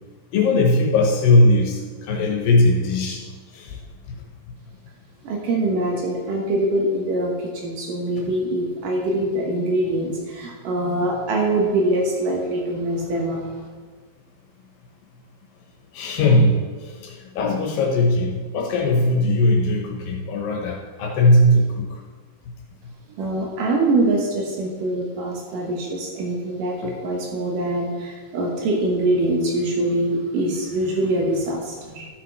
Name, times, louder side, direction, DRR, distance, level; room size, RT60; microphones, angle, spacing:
voice 1, 0.3-3.2 3.5-3.8 4.1-4.2 15.9-21.9 26.8-26.9, left 1 dB, 80° left, 0 dB, 2.8 m, -19 dB
voice 2, 5.2-13.5 23.1-32.1, right 1 dB, 75° right, -1 dB, 2.6 m, -23 dB
13.0 x 5.8 x 4.6 m, 1.5 s
omnidirectional pair, 4.0 m